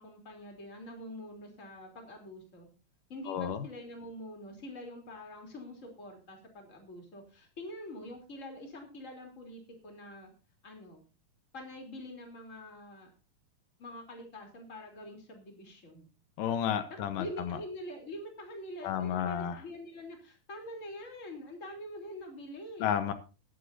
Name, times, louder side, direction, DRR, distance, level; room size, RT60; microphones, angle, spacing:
voice 1, 0.0-2.7 3.1-10.3 10.6-11.0 11.5-13.1 13.8-16.1 17.2-22.9, left 1 dB, 25° left, 2 dB, 3.5 m, -45 dB
voice 2, 3.3-3.7 16.4-17.6 18.8-19.6 22.8-23.1, left 9 dB, 85° left, 10 dB, 2.7 m, -32 dB
21.5 x 8.4 x 2.7 m, 0.33 s
omnidirectional pair, 3.7 m